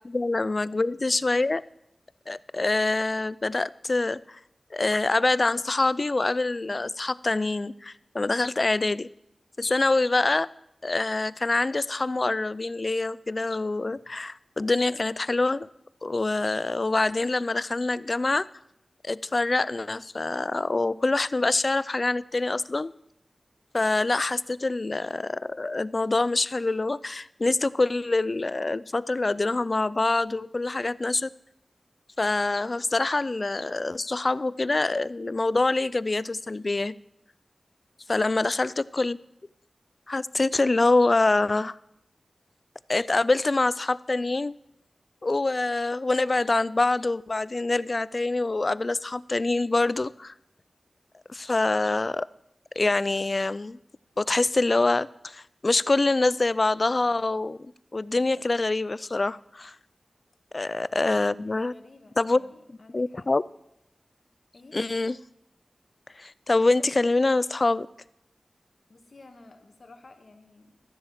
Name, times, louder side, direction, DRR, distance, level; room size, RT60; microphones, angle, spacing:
voice 1, 0.0-1.6 2.3-4.4 4.7-9.1 9.6-10.5 10.8-15.7 16.0-18.5 19.0-22.9 23.7-31.3 32.2-37.0 38.1-39.2 40.1-41.8 42.9-44.5 45.2-50.3 51.3-52.3 52.8-53.8 54.2-57.6 57.9-59.8 60.5-61.7 62.2-62.4 62.9-63.4 64.7-65.2 66.2-67.9, left 2 dB, 45° left, 19 dB, 0.3 m, -25 dB
voice 2, 61.4-63.3 64.5-64.8 68.9-70.8, left 2 dB, 60° left, 6 dB, 1.6 m, -52 dB
13.0 x 7.5 x 7.4 m, 0.80 s
wide cardioid pair, 80°, 0 cm